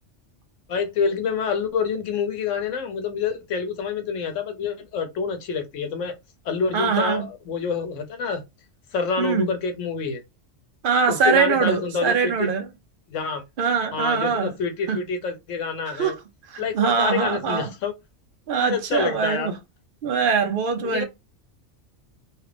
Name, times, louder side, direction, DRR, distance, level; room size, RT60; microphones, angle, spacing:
voice 1, 0.7-6.1 6.4-8.4 8.9-10.2 11.1-12.5 13.1-13.4 13.9-16.1 16.6-17.9 18.6-19.5 20.8-21.0, left 5 dB, 90° left, 1.1 m, -27 dB
voice 2, 6.7-7.3 9.2-9.5 10.8-12.7 13.6-14.5 14.9-15.0 15.9-16.2 16.5-17.7 18.5-19.6 20.0-21.0, right 6 dB, 55° right, 0.7 m, -22 dB
2.9 x 2.5 x 3.2 m
omnidirectional pair, 1.2 m